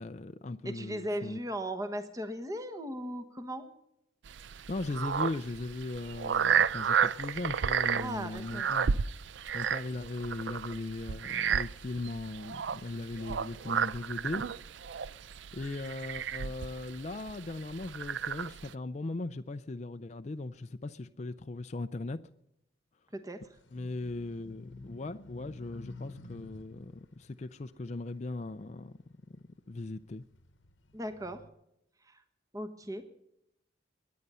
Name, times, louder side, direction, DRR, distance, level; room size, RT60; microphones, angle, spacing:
voice 1, 0.0-1.4 4.7-9.0 9.5-14.5 15.5-22.2 23.7-28.9 29.7-30.2, left 2 dB, 35° left, 0.5 m, -38 dB
voice 2, 0.6-3.7 7.9-8.7 23.1-23.4 30.9-31.4 32.1-32.2 32.5-33.0, right 1 dB, 20° right, 1.1 m, -37 dB
sound 1, 4.3-18.7, right 7 dB, 75° right, 0.5 m, -32 dB
sound 2, 23.5-29.1 29.6-31.5, left 2 dB, 85° left, 1.1 m, -51 dB
22.5 x 9.5 x 5.5 m
head